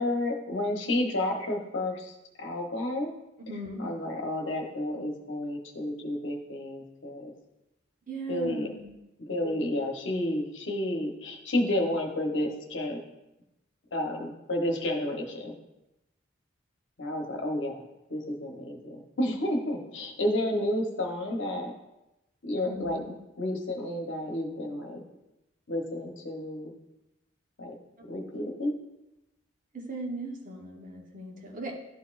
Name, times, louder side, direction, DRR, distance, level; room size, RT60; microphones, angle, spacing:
voice 1, 0.0-3.1 3.8-7.3 8.3-8.7 9.2-13.0 13.9-15.5 17.0-17.8 18.1-21.7 22.4-23.0 23.4-25.0 25.7-26.7 27.6-27.7 28.1-28.7, left 1 dB, 70° left, 2 dB, 1.1 m, -31 dB
voice 2, 3.4-3.8 8.1-8.9 22.7-23.1 29.7-31.7, right 2 dB, 45° right, -1 dB, 1.1 m, -38 dB
12.0 x 4.2 x 2.5 m, 0.93 s
head